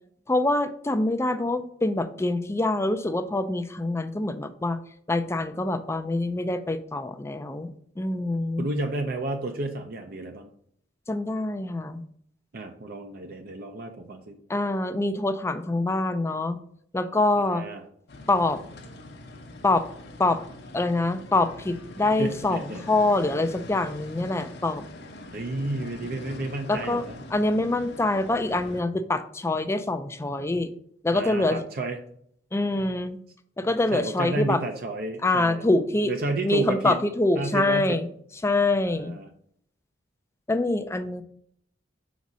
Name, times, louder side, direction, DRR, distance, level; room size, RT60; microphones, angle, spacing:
voice 1, 0.3-4.8 5.1-7.7 8.0-8.7 11.1-12.0 14.5-16.6 16.9-17.6 18.3-18.6 19.6-19.8 20.2-20.4 20.7-24.8 26.7-27.0 27.3-30.7 31.0-31.6 32.5-33.2 33.6-34.6 35.2-36.1 36.4-38.1 38.4-39.1 40.5-41.2, left 2 dB, 15° left, 10 dB, 0.4 m, -25 dB
voice 2, 8.6-10.5 12.5-14.4 17.4-17.8 22.0-22.8 25.3-27.2 31.1-32.0 33.9-35.6 36.1-37.0 37.4-38.0 38.9-39.3, right 2 dB, 50° right, 5 dB, 0.6 m, -31 dB
sound 1, 18.1-28.8, left 2 dB, 55° left, 0.8 m, -43 dB
5.1 x 4.1 x 6.0 m, 0.66 s
head